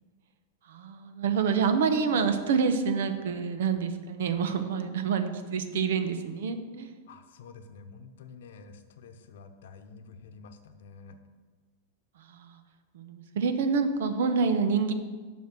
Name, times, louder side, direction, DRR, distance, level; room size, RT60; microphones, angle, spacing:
voice 1, 0.7-6.9 12.3-12.6 12.9-14.9, right 5 dB, 75° right, 8 dB, 0.9 m, -27 dB
voice 2, 7.1-11.2, left 5 dB, 75° left, 8 dB, 0.8 m, -49 dB
7.3 x 6.2 x 6.0 m, 1.4 s
supercardioid pair, 145°, 0 cm